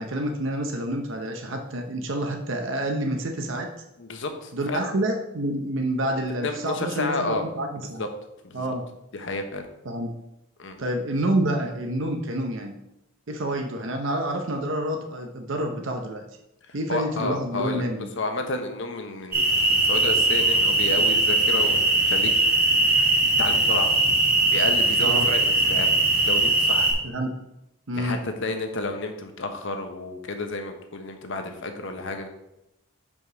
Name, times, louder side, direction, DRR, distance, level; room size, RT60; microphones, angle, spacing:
voice 1, 0.0-3.7 4.5-8.0 8.5-8.9 9.8-10.1 10.8-12.7 13.3-16.2 16.7-18.1 25.0-25.3 27.0-27.3 27.9-28.2, right 1 dB, 60° right, 3 dB, 0.8 m, -28 dB
voice 2, 4.0-4.9 6.4-7.4 7.7-8.1 8.4-8.7 9.1-9.7 10.6-10.8 16.9-21.8 22.0-22.3 23.4-23.9 24.4-25.9 26.2-26.9 27.9-32.3, left 2 dB, 60° left, 5 dB, 1.0 m, -31 dB
sound 1, 19.3-26.9, right 2 dB, 45° right, 1.9 m, -20 dB
5.4 x 4.9 x 6.0 m, 0.87 s
head